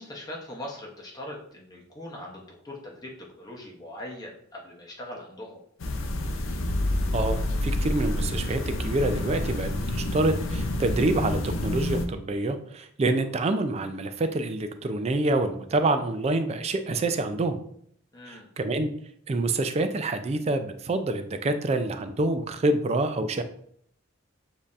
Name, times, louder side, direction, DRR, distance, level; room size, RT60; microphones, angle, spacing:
voice 1, 0.0-3.1 3.4-5.6 18.1-18.5, left 1 dB, 20° left, -2 dB, 0.8 m, -41 dB
sound 1, 5.8-12.1, left 1 dB, 75° left, 0.6 m, -28 dB
voice 2, 7.1-17.6 18.3-18.9 19.3-23.4, right 2 dB, 30° right, 9 dB, 0.3 m, -27 dB
7.1 x 2.7 x 2.5 m, 0.66 s
head